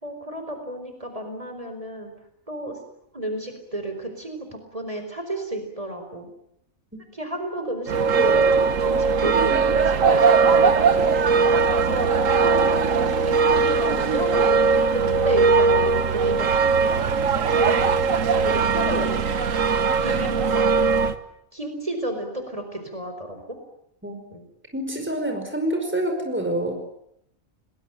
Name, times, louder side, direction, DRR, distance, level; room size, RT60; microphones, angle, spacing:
voice 1, 0.0-2.1 2.5-2.8 3.1-6.3 7.1-17.0 17.5-19.1 20.0-20.7 20.9-21.0 21.5-23.6 24.3-24.4, right 1 dB, 25° right, 6 dB, 4.6 m, -32 dB
sound 1, 7.9-21.2, right 5 dB, 70° right, 1.6 m, -20 dB
voice 2, 24.7-26.7, right 1 dB, 10° right, 4 dB, 5.1 m, -27 dB
29.5 x 21.0 x 9.2 m, 0.75 s
omnidirectional pair, 1.4 m